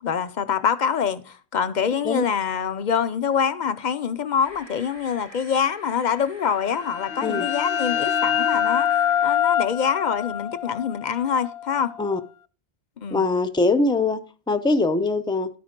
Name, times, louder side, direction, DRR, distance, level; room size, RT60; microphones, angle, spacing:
voice 1, 0.0-8.9 9.2-11.9 13.0-13.2, left 7 dB, 55° left, 0.6 m, -25 dB
sound 1, 4.4-9.4, right 1 dB, 50° right, 3.2 m, -47 dB
sound 2, 6.6-12.1, left 9 dB, 80° left, 0.8 m, -25 dB
voice 2, 13.1-14.2 14.5-15.5, left 3 dB, 5° left, 0.3 m, -22 dB
12.0 x 4.8 x 5.1 m
omnidirectional pair, 1.1 m